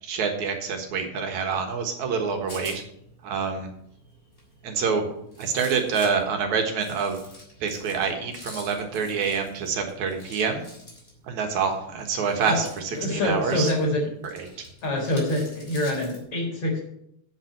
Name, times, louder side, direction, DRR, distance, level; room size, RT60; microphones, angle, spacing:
voice 1, 0.0-2.8 3.2-3.7 4.6-5.0 5.4-7.2 7.6-10.7 11.2-13.7 14.3-14.7, right 5 dB, 80° right, 4 dB, 2.8 m, -27 dB
Rattle, 2.1-16.2, left 1 dB, 20° left, 3.8 m, -47 dB
voice 2, 12.9-14.1 14.8-16.8, left 1 dB, 50° left, -1 dB, 4.9 m, -25 dB
8.5 x 7.6 x 7.5 m, 0.75 s
omnidirectional pair, 3.3 m